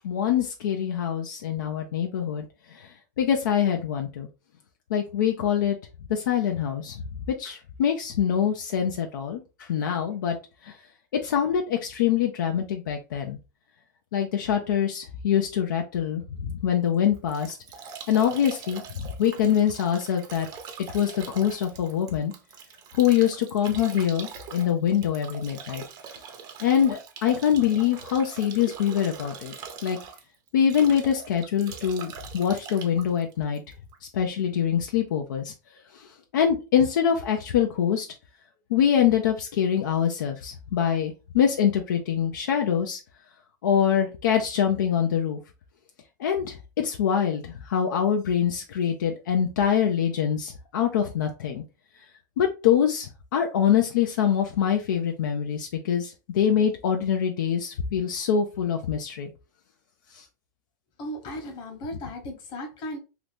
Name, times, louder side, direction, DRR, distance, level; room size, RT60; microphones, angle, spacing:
voice 1, 0.0-2.4 2.7-4.3 4.9-5.8 6.1-7.0 7.4-10.4 10.6-10.8 11.1-13.4 14.1-17.6 18.1-20.5 20.9-22.3 23.0-25.8 26.6-29.5 29.8-30.0 30.5-33.6 34.1-35.5 35.9-38.1 38.7-43.0 43.6-45.4 46.2-51.6 52.4-59.3 60.1-60.2, left 8 dB, 85° left, 0.5 m, -24 dB
Bathtub (filling or washing) / Drip / Trickle dribble, 16.9-34.1, right 6 dB, 40° right, 0.7 m, -43 dB
voice 2, 61.0-63.0, equal, 45° left, 1.2 m, -36 dB
2.9 x 2.5 x 3.3 m
hypercardioid pair, 115°, 10 cm